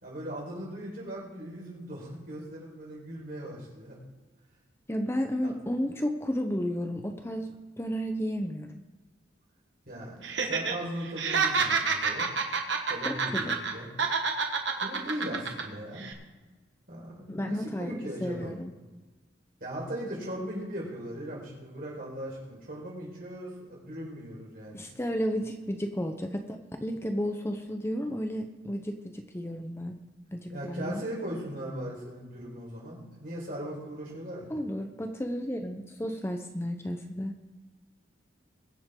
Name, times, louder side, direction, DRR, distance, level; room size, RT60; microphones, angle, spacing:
voice 1, 0.0-4.0 5.4-5.5 9.9-12.3 12.9-13.9 14.7-16.1 16.9-18.5 19.6-24.8 30.5-34.4, equal, 50° right, -4 dB, 5.0 m, -38 dB
voice 2, 4.9-8.7 13.0-13.6 17.3-17.9 18.2-18.7 24.7-30.0 30.3-31.0 34.5-37.3, equal, 15° left, 5 dB, 0.7 m, -32 dB
Laughter, 10.2-10.7 11.0-13.7 14.0-15.6 16.0-16.1, right 5 dB, 75° right, 1.5 m, -28 dB
22.5 x 7.7 x 3.8 m, 1.2 s
head